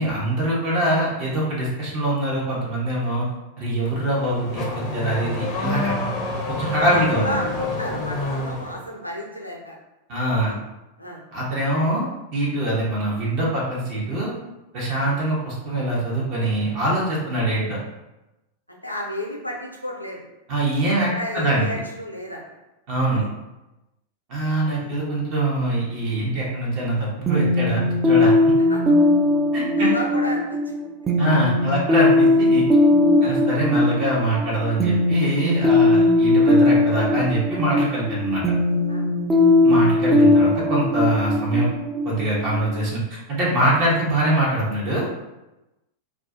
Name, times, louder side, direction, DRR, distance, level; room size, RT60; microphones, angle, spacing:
voice 1, 0.0-3.2 3.6-5.9 6.5-7.3 10.1-10.6 11.3-14.3 14.7-17.8 20.5-21.1 21.3-21.6 22.9-23.2 24.3-28.5 29.5-29.9 31.2-32.6 33.2-38.4 39.6-41.7 42.0-45.1, right 1 dB, 40° right, -5 dB, 0.8 m, -23 dB
Car / Accelerating revving vroom, 3.8-8.8, left 3 dB, 35° left, 0.5 m, -28 dB
voice 2, 6.8-9.8 10.4-10.6 11.0-11.2 15.0-15.2 18.7-20.3 21.1-22.4 23.1-23.3 24.8-24.9 28.7-28.8 29.8-30.6 31.9-32.0 33.2-33.4 38.9-39.0, equal, 90° left, -1 dB, 0.5 m, -32 dB
sound 1, 27.3-42.8, left 2 dB, 15° right, 0.4 m, -19 dB
2.4 x 2.3 x 2.5 m, 0.97 s
figure-of-eight pair, 90°, 0 cm